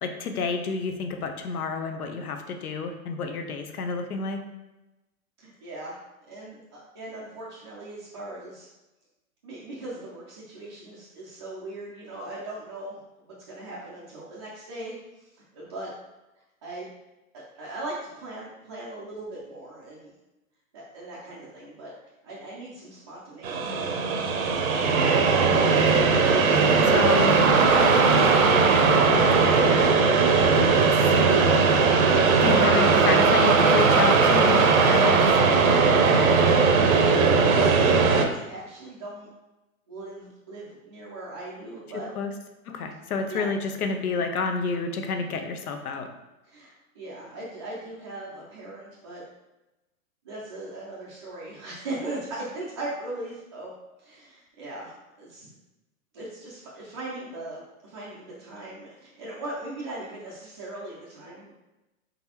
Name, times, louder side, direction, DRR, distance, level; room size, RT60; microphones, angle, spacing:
voice 1, 0.0-4.4 25.9-26.2 26.9-27.5 28.6-29.3 30.8-31.7 32.4-35.4 42.2-42.3 42.7-46.1, left 4 dB, 90° left, 6 dB, 0.7 m, -29 dB
voice 2, 5.4-6.0 6.3-8.7 9.4-15.9 16.6-16.9 17.3-20.1 20.7-21.9 22.2-24.1 36.5-39.3 39.9-42.1 43.3-43.5 46.4-49.2 50.2-53.7 54.0-55.5 56.1-61.5, right 2 dB, 20° right, -7 dB, 0.3 m, -39 dB
sound 1, 23.4-38.3, right 4 dB, 70° right, 0.7 m, -19 dB
4.0 x 3.4 x 2.8 m, 1.0 s
hypercardioid pair, 145°, 43 cm